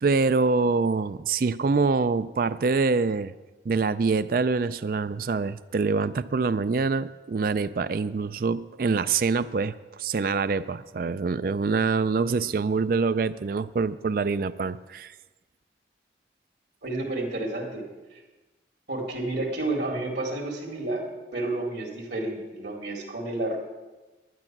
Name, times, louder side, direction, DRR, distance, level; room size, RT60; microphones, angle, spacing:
voice 1, 0.0-3.3 3.7-15.1, right 4 dB, 50° right, 15 dB, 0.4 m, -25 dB
voice 2, 16.8-18.2 18.9-21.1 21.3-23.6, right 2 dB, 70° right, 1 dB, 2.0 m, -30 dB
11.5 x 9.6 x 6.0 m, 1.2 s
head